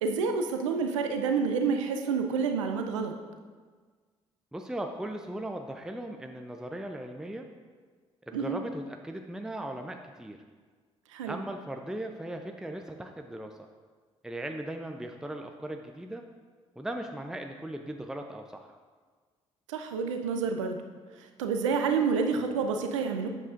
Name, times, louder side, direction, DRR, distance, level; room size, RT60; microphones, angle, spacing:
voice 1, 0.0-3.1 8.3-8.6 11.1-11.4 19.7-20.8 21.4-23.3, right 5 dB, 85° right, 5 dB, 0.5 m, -28 dB
voice 2, 4.5-7.5 8.3-10.4 11.3-13.5 14.2-16.2 16.8-18.7, right 1 dB, 5° right, 4 dB, 0.6 m, -38 dB
8.3 x 7.1 x 2.5 m, 1.5 s
hypercardioid pair, 45°, 16 cm